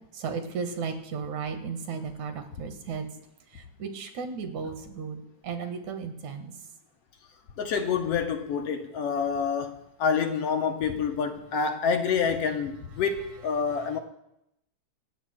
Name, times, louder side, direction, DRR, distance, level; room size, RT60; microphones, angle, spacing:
voice 1, 0.2-3.1 3.8-6.5, right 5 dB, 75° right, 2.8 m, -34 dB
voice 2, 7.6-14.0, left 6 dB, 65° left, 1.7 m, -27 dB
27.0 x 14.5 x 2.2 m
omnidirectional pair, 3.4 m